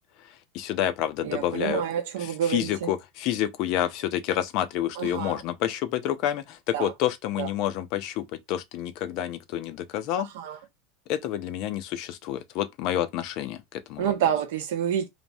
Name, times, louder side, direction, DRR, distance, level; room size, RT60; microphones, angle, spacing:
voice 1, 0.5-1.8 2.2-10.3 11.1-14.1, left 11 dB, 45° left, 0.4 m, -29 dB
voice 2, 1.2-2.9 5.0-5.4 6.7-6.9 7.4-7.5 10.2-10.6 14.0-15.1, right 9 dB, 80° right, 0.8 m, -28 dB
3.3 x 2.1 x 2.6 m
supercardioid pair, 160°, 0 cm